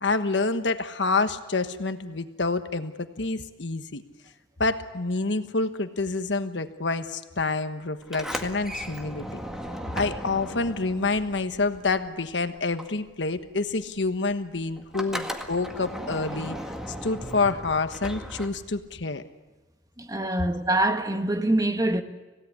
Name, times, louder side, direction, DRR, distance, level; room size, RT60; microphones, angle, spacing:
voice 1, 0.0-4.0 4.6-9.4 9.9-16.6 16.9-19.2, left 3 dB, 75° left, 1.3 m, -27 dB
Sliding door, 8.0-12.3 12.6-18.9, equal, 5° right, 1.8 m, -37 dB
voice 2, 20.0-22.0, right 1 dB, 20° right, 1.2 m, -24 dB
26.0 x 17.0 x 9.8 m
head